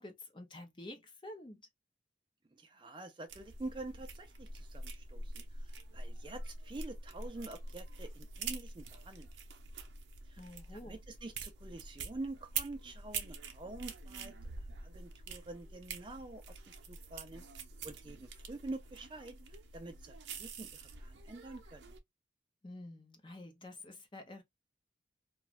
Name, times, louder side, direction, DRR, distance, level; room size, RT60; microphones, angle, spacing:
voice 1, 0.0-1.6 10.4-11.0 22.6-24.4, left 1 dB, 25° left, 0.6 m, -49 dB
voice 2, 2.5-9.3 10.3-14.4 14.8-17.4 17.8-21.9, right 2 dB, 25° right, 0.4 m, -47 dB
sound 1, 3.3-22.0, right 4 dB, 80° right, 0.6 m, -45 dB
2.4 x 2.3 x 3.0 m
head